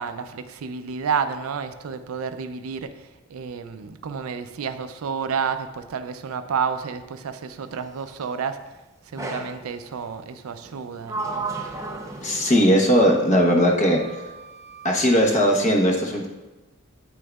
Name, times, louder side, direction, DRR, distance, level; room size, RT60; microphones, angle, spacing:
voice 1, 0.0-2.9 3.3-8.6 9.1-11.5, right 6 dB, 75° right, 10 dB, 0.4 m, -30 dB
Sliding door, 9.2-9.6 10.6-13.1 13.6-15.0, right 3 dB, 15° right, 0.6 m, -34 dB
voice 2, 12.2-14.0 14.8-16.3, equal, 35° left, 0 dB, 0.9 m, -18 dB
8.8 x 6.3 x 2.3 m, 1.1 s
head